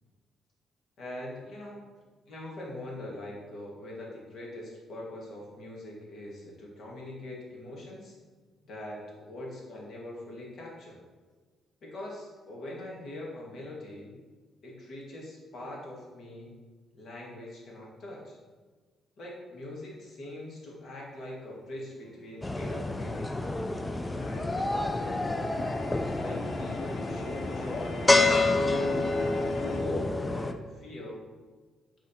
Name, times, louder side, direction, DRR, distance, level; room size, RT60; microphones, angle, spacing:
voice 1, 1.0-1.8 2.3-8.1 8.6-11.0 11.8-14.1 14.6-16.5 16.9-18.4 19.2-23.5 24.2-25.5 26.0-28.1 28.5-29.3 29.8-31.2, left 1 dB, 60° left, -3 dB, 1.9 m, -42 dB
sound 1, 22.4-30.5, left 2 dB, 15° left, 0.4 m, -28 dB
sound 2, 22.6-29.8, left 4 dB, 85° left, 0.6 m, -42 dB
6.3 x 3.7 x 4.3 m, 1.4 s
cardioid pair, 90°, 0 cm